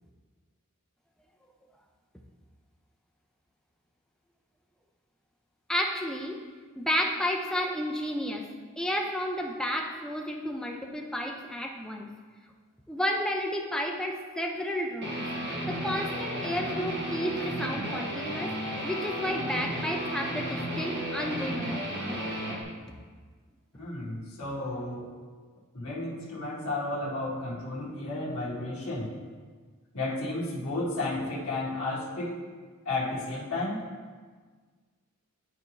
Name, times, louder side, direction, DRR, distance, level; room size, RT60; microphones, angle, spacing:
voice 1, 5.7-6.4 6.8-12.1 12.9-22.2 23.7-23.9, equal, 5° left, 1 dB, 0.5 m, -32 dB
Guitar, 15.0-22.6, equal, 50° right, 1.2 m, -33 dB
voice 2, 23.8-25.1 25.7-29.1 29.9-32.3 32.8-33.8, left 2 dB, 70° left, -8 dB, 1.6 m, -32 dB
11.0 x 4.1 x 3.2 m, 1.5 s
head